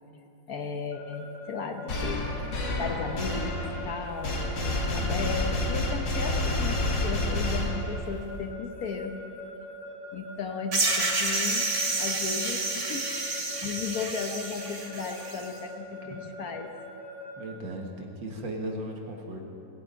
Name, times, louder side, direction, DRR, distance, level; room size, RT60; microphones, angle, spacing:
voice 1, 0.5-2.3 2.8-9.2 10.1-16.7, left 5 dB, 60° left, 5 dB, 1.3 m, -35 dB
Keyboard (musical) / Alarm, 0.9-17.5, left 3 dB, 15° left, 4.6 m, -42 dB
sound 1, 1.9-8.2, left 2 dB, 75° left, 2.5 m, -29 dB
sound 2, 10.7-15.4, right 3 dB, 70° right, 2.9 m, -29 dB
voice 2, 17.4-19.5, right 1 dB, 85° right, 1 dB, 2.3 m, -36 dB
19.5 x 8.1 x 8.6 m, 2.8 s
omnidirectional pair, 2.0 m